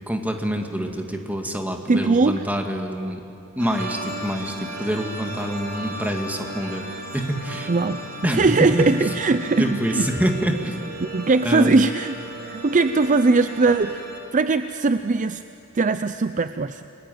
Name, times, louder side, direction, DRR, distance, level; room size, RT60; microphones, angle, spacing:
voice 1, 0.1-3.2 3.6-6.8 7.1-7.7 8.2-8.5 8.7-8.9 9.6-10.9 11.4-11.8, equal, 5° right, 3 dB, 2.0 m, -26 dB
voice 2, 1.9-2.4 7.7-8.0 8.3-10.1 11.0-12.1 12.4-14.0 14.3-15.4 15.7-16.8, right 3 dB, 35° right, 11 dB, 0.5 m, -20 dB
sound 1, 3.6-14.2, right 1 dB, 75° right, 3.5 m, -36 dB
29.0 x 20.0 x 9.3 m, 3.0 s
head